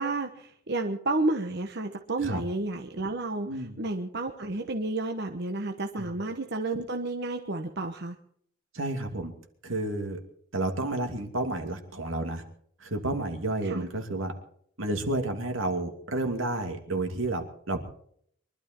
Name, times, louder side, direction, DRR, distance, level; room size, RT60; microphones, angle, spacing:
voice 1, 0.0-8.2 13.6-13.9, right 2 dB, 55° right, 4 dB, 1.1 m, -31 dB
voice 2, 8.7-9.3 9.6-10.2 10.5-12.4 12.8-14.3 14.8-17.8, right 2 dB, 80° right, 5 dB, 2.6 m, -31 dB
23.5 x 12.5 x 4.5 m, 0.63 s
head